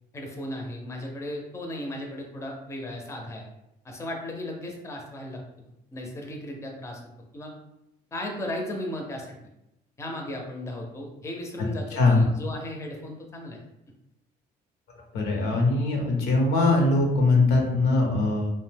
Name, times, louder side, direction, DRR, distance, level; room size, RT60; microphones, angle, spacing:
voice 1, 0.1-3.4 3.8-5.4 5.9-7.0 7.3-7.5 8.1-9.3 10.0-13.6, left 1 dB, 15° left, 1 dB, 0.5 m, -35 dB
voice 2, 11.9-12.3 15.1-18.5, left 2 dB, 80° left, 1 dB, 0.7 m, -21 dB
2.6 x 2.1 x 3.3 m, 0.87 s
cardioid pair, 110°, 17 cm